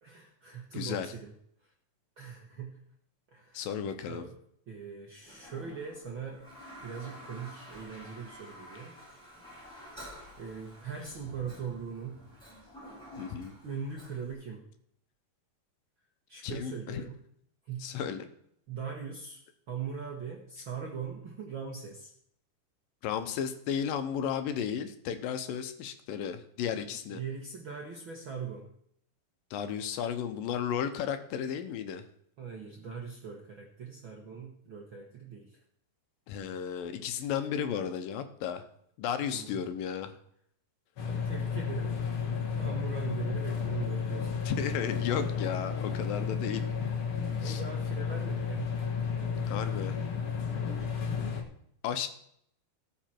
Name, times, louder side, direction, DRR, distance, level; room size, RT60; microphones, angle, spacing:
voice 1, 0.0-1.3 2.2-2.8 3.3-3.7 4.0-4.3 4.7-6.4 6.8-8.9 10.4-12.2 13.6-14.6 16.3-17.2 17.6-17.9 18.7-19.4 19.7-22.1 26.9-28.6 32.4-35.6 39.3-39.6 41.0-42.0 42.6-44.4 47.1-48.7 49.2-49.7, right 6 dB, 60° right, -1 dB, 1.3 m, -41 dB
voice 2, 0.7-1.1 3.5-4.2 13.2-13.5 16.4-17.0 17.8-18.3 23.0-27.2 29.5-32.0 36.3-38.6 39.0-40.1 44.5-46.7 47.4-47.6 49.5-50.0 51.8-52.1, left 8 dB, 75° left, 9 dB, 2.5 m, -34 dB
Toilet flush, 5.2-14.3, equal, ahead, 5.2 m, -50 dB
sound 1, 41.0-51.4, left 6 dB, 50° left, 1.8 m, -32 dB
17.5 x 6.1 x 4.5 m, 0.69 s
omnidirectional pair, 4.1 m